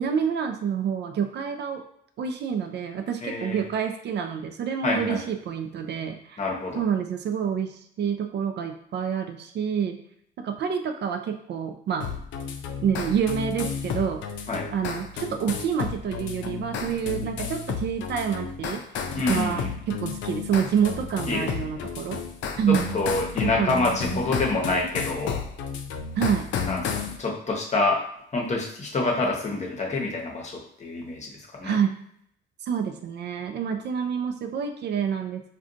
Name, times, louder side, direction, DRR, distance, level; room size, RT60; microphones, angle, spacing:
voice 1, 0.0-1.8 2.2-6.4 6.8-10.0 10.4-12.1 12.8-14.2 14.7-18.8 19.2-22.2 22.6-22.9 23.4-23.8 24.1-24.2 26.2-26.5 31.6-32.0 32.6-35.5, right 7 dB, 60° right, 6 dB, 0.4 m, -27 dB
voice 2, 3.2-3.6 4.8-5.2 6.4-6.8 14.5-14.7 19.2-19.7 21.3-21.8 22.7-25.4 26.7-28.0 28.3-31.7, left 2 dB, 35° left, -1 dB, 0.9 m, -27 dB
sound 1, 12.0-27.2, left 6 dB, 70° left, 0.4 m, -32 dB
2.5 x 2.3 x 3.7 m, 0.68 s
cardioid pair, 90°, 20 cm